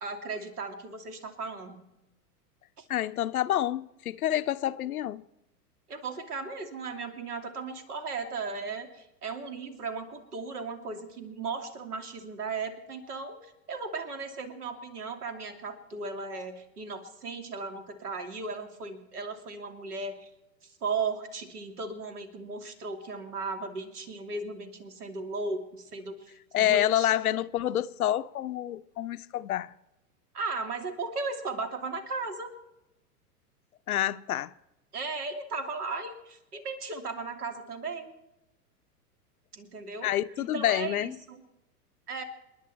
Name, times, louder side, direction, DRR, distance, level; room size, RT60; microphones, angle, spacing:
voice 1, 0.0-1.8 2.8-2.9 5.9-20.3 20.6-26.3 26.6-27.1 30.3-32.5 34.9-38.1 39.5-40.1 40.4-41.4 42.1-42.2, right 4 dB, 70° right, 2.9 m, -36 dB
voice 2, 2.9-5.2 26.5-29.7 33.9-34.5 40.0-41.1, left 12 dB, 65° left, 0.7 m, -28 dB
28.5 x 11.0 x 4.3 m
figure-of-eight pair, 100°, 47 cm